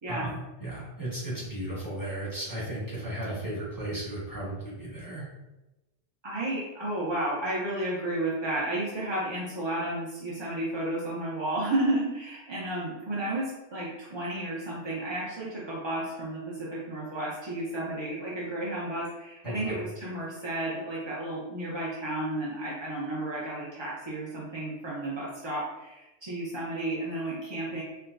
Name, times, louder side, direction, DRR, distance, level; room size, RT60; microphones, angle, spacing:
voice 1, 0.1-5.3 19.4-19.7, right 1 dB, 15° right, -8 dB, 1.1 m, -35 dB
voice 2, 6.2-27.8, right 1 dB, 40° right, -6 dB, 0.4 m, -32 dB
4.5 x 2.1 x 2.5 m, 1.0 s
omnidirectional pair, 1.3 m